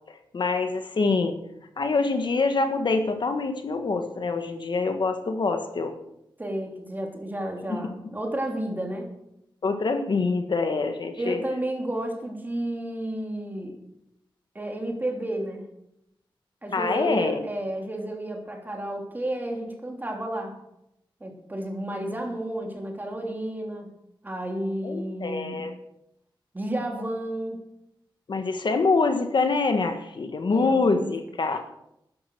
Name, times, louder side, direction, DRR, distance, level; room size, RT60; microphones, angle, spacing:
voice 1, 0.3-1.4 1.8-5.9 7.7-7.8 9.6-11.4 16.7-17.4 24.8-25.7 28.3-31.6, left 3 dB, 60° left, 6 dB, 1.5 m, -25 dB
voice 2, 6.4-9.1 11.2-13.7 14.5-15.6 16.6-20.6 21.2-23.9 24.2-25.6 26.5-27.6 30.5-31.1 31.4-31.6, right 1 dB, 20° right, 2 dB, 3.1 m, -32 dB
12.5 x 10.5 x 6.8 m, 0.81 s
wide cardioid pair, 120°, 9 cm